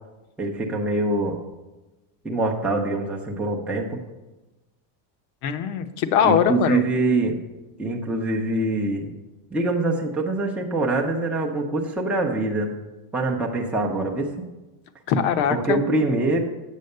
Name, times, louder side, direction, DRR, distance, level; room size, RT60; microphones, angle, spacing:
voice 1, 0.4-1.4 2.2-4.0 6.2-7.4 7.8-9.1 9.5-12.7 13.1-14.3 15.5-16.4, right 2 dB, 5° right, -1 dB, 0.7 m, -24 dB
voice 2, 5.4-6.9 15.1-15.8, left 8 dB, 60° left, 9 dB, 0.9 m, -21 dB
8.2 x 7.5 x 6.6 m, 1.1 s
cardioid pair, 170°, 41 cm